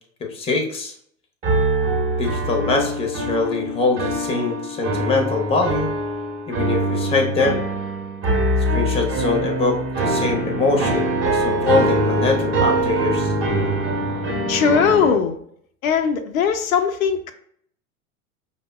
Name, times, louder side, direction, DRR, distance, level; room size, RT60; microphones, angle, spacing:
voice 1, 0.3-0.9 2.2-5.9 6.5-7.7 8.7-13.3, left 3 dB, 15° left, 2 dB, 0.6 m, -23 dB
sound 1, 1.4-15.2, right 1 dB, 30° right, 0.9 m, -23 dB
voice 2, 14.5-15.4 15.8-17.3, left 6 dB, 75° left, 6 dB, 0.5 m, -19 dB
5.0 x 2.1 x 2.2 m, 0.64 s
hypercardioid pair, 90°, 41 cm